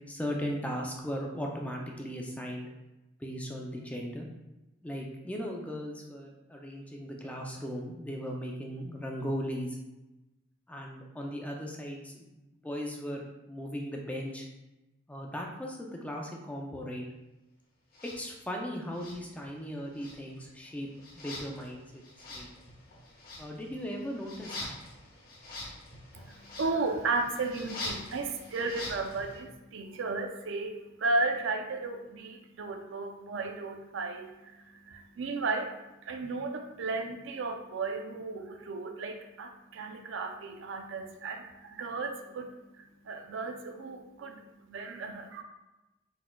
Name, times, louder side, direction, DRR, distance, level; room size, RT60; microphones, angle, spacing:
voice 1, 0.1-2.7 3.2-4.3 4.8-9.8 10.7-12.4 12.6-14.5 15.1-17.0 18.0-20.9 21.2-22.0 22.3-22.5 23.4-24.8, equal, 5° left, 0 dB, 0.4 m, -37 dB
sound 1, 17.9-18.2 18.9-19.7 19.9-29.4, left 2 dB, 45° left, 0.9 m, -44 dB
voice 2, 26.1-45.4, right 3 dB, 65° right, 4 dB, 0.5 m, -34 dB
4.3 x 4.2 x 2.2 m, 1.0 s
head